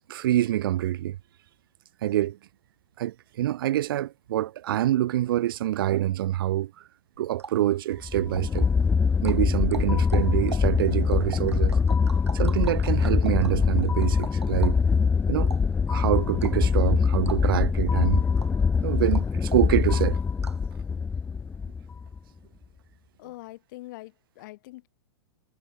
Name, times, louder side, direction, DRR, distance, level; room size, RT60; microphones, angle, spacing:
voice 1, 0.1-1.2 2.0-2.4 3.0-6.7 7.2-8.7 9.2-11.8 12.3-14.8 15.3-15.5 15.9-18.2 18.8-20.2, right 13 dB, 55° right, 1.9 m, -26 dB
sound 1, 7.2-20.7, right 5 dB, 75° right, 3.1 m, -44 dB
sound 2, 8.0-22.2, left 5 dB, 10° left, 1.7 m, -23 dB
voice 2, 23.2-24.9, left 19 dB, 45° left, 6.7 m, -43 dB
figure-of-eight pair, 105°, 14 cm